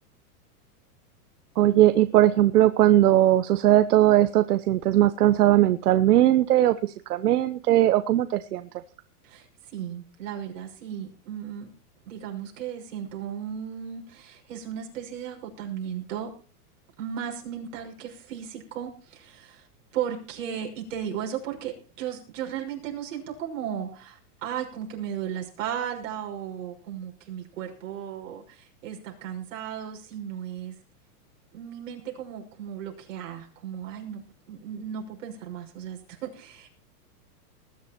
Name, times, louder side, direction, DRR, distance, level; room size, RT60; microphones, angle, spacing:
voice 1, 1.6-8.7, right 13 dB, 75° right, 11 dB, 1.1 m, -19 dB
voice 2, 9.7-11.7 12.1-16.3 17.0-19.7 19.9-30.7 31.5-34.2 34.5-36.7, right 9 dB, 55° right, 0 dB, 6.1 m, -35 dB
19.5 x 10.5 x 4.4 m, 0.39 s
supercardioid pair, 175°, 46 cm